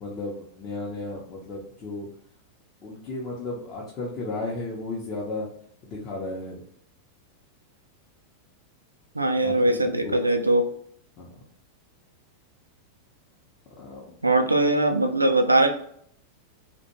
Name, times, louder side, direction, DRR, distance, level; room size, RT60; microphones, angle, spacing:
voice 1, 0.0-2.1 2.8-5.5 5.8-6.6 9.4-10.2 11.2-11.3 13.8-14.2, left 2 dB, 30° left, -4 dB, 0.6 m, -34 dB
voice 2, 9.1-10.7 14.2-15.7, right 2 dB, 85° right, 6 dB, 0.3 m, -21 dB
2.4 x 2.1 x 2.8 m, 0.65 s
figure-of-eight pair, 90°, 0 cm